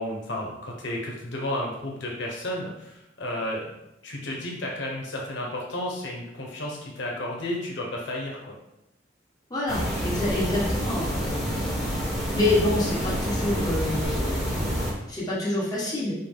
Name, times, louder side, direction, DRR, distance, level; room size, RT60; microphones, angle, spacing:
voice 1, 0.0-3.7 4.0-8.6, left 1 dB, 80° left, -2 dB, 0.9 m, -32 dB
voice 2, 9.5-11.9 12.3-14.6 15.1-16.1, left 2 dB, 20° left, -7 dB, 1.3 m, -27 dB
sound 1, 9.7-14.9, equal, ahead, 1.2 m, -28 dB
5.6 x 2.3 x 3.5 m, 0.88 s
head